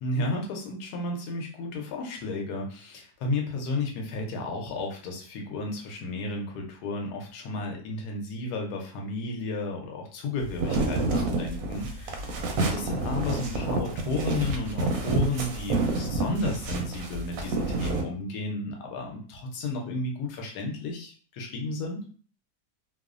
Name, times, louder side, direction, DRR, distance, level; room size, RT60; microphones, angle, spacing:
voice 1, 0.0-12.4 12.7-22.0, left 2 dB, 75° left, 2 dB, 1.2 m, -33 dB
sound 1, 10.4-18.0, right 2 dB, 70° right, 0.9 m, -28 dB
3.0 x 2.0 x 2.4 m, 0.42 s
omnidirectional pair, 1.8 m